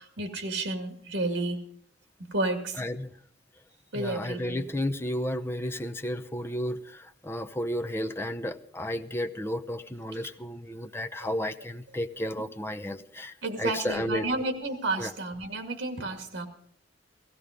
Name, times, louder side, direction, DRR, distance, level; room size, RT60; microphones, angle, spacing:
voice 1, 0.0-1.6 2.3-2.8 3.9-4.6 11.2-11.3 13.4-16.5, right 2 dB, 85° right, 6 dB, 2.3 m, -31 dB
voice 2, 2.8-3.1 3.9-14.3 15.0-15.1, left 1 dB, 15° left, 6 dB, 0.7 m, -33 dB
16.5 x 15.5 x 5.2 m, 0.63 s
head